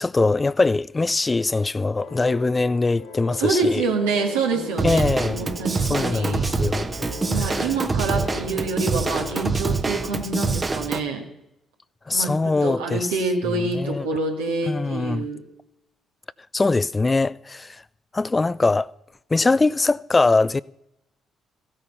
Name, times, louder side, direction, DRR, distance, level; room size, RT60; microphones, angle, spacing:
voice 1, 0.0-3.8 4.8-5.5 5.8-6.9 7.4-7.7 12.1-13.1 13.5-14.1 14.6-15.3 16.5-17.8 18.1-18.9 19.3-20.6, left 3 dB, 25° left, 0.4 m, -22 dB
sound 1, 2.0-9.5, left 4 dB, 90° left, 3.6 m, -40 dB
voice 2, 3.4-6.5 7.3-11.2 12.1-12.3 12.6-15.4, right 3 dB, 85° right, 2.1 m, -26 dB
Drum kit / Drum, 4.8-11.0, right 4 dB, 30° right, 1.1 m, -25 dB
15.0 x 8.8 x 5.6 m
hypercardioid pair, 50°, 0 cm